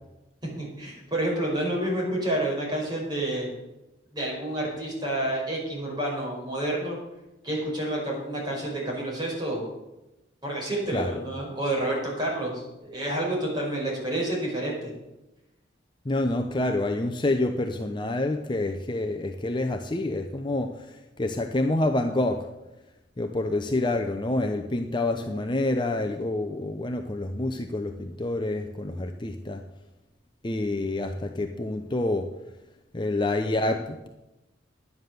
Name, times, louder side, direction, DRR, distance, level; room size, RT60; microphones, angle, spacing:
voice 1, 0.6-3.5 4.1-7.0 7.4-9.6 10.4-14.9, right 1 dB, 25° right, -3 dB, 4.9 m, -29 dB
voice 2, 16.0-22.5 23.2-29.6 30.4-32.3 32.9-34.1, left 2 dB, 25° left, 5 dB, 0.7 m, -27 dB
11.0 x 9.5 x 6.7 m, 0.98 s
head